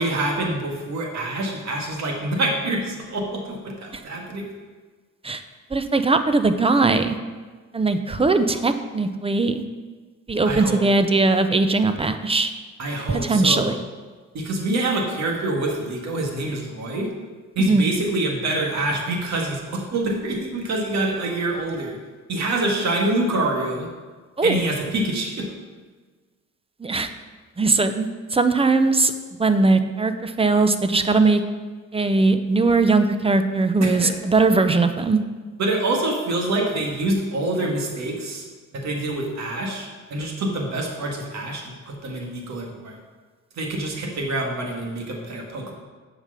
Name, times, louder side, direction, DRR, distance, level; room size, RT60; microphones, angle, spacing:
voice 1, 0.0-4.4 10.5-10.8 12.8-13.7 14.3-17.1 17.6-22.0 22.3-23.9 24.4-25.5 33.8-34.1 35.6-38.4 38.7-42.9 43.6-45.7, right 2 dB, 65° right, 0 dB, 1.9 m, -26 dB
voice 2, 5.7-7.2 7.7-9.6 10.3-12.5 13.1-13.8 17.6-17.9 24.4-24.6 26.8-27.1 27.6-29.1 29.4-31.4 31.9-35.2, right 3 dB, 20° right, 9 dB, 0.6 m, -20 dB
7.1 x 5.0 x 6.8 m, 1.4 s
cardioid pair, 90°, 30 cm